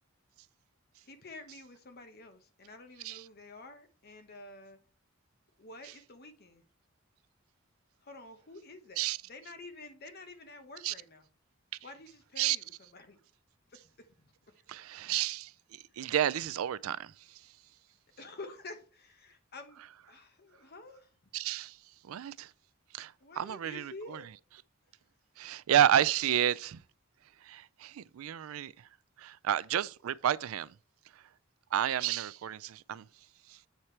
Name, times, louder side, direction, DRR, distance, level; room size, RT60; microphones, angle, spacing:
voice 1, 1.0-4.8 5.6-6.6 8.0-11.3 11.8-13.2 13.7-14.3 15.9-16.0 18.2-19.8 20.1-21.2 23.2-24.3, left 2 dB, 50° left, 1.0 m, -49 dB
voice 2, 14.7-17.4 21.3-21.8 22.0-22.5 22.9-24.2 25.4-26.8 27.4-28.9 29.2-30.7 31.1-31.2 31.7-33.1 33.5-33.6, right 10 dB, 85° right, 0.4 m, -31 dB
8.1 x 4.3 x 4.5 m
head